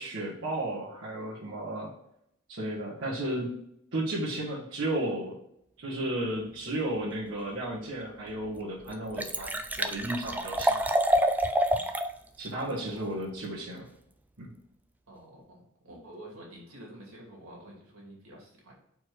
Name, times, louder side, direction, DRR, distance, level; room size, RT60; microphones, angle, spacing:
voice 1, 0.0-1.9 2.5-3.6 3.9-5.4 5.8-10.8 12.4-13.9 14.4-14.5, right 1 dB, 60° right, -9 dB, 1.7 m, -33 dB
Liquid, 8.0-8.1 8.6-8.7 8.9-12.1 12.5-12.6, right 1 dB, 10° right, 0.4 m, -27 dB
voice 2, 12.6-13.2 15.1-18.7, right 1 dB, 75° right, -3 dB, 2.5 m, -49 dB
4.8 x 4.5 x 4.6 m, 0.75 s
head